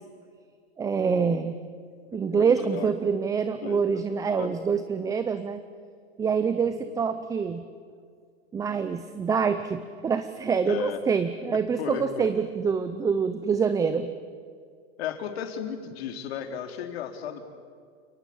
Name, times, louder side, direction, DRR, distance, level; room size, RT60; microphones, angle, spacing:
voice 1, 0.8-1.5 2.1-5.6 6.2-7.6 8.5-14.1, right 6 dB, 10° right, 11 dB, 0.7 m, -26 dB
voice 2, 2.3-2.9 3.6-3.8 4.4-4.5 6.6-7.0 10.7-11.0 11.8-12.3 15.0-17.5, left 8 dB, 65° left, 5 dB, 3.6 m, -34 dB
29.5 x 19.0 x 8.7 m, 2.1 s
supercardioid pair, 150°, 33 cm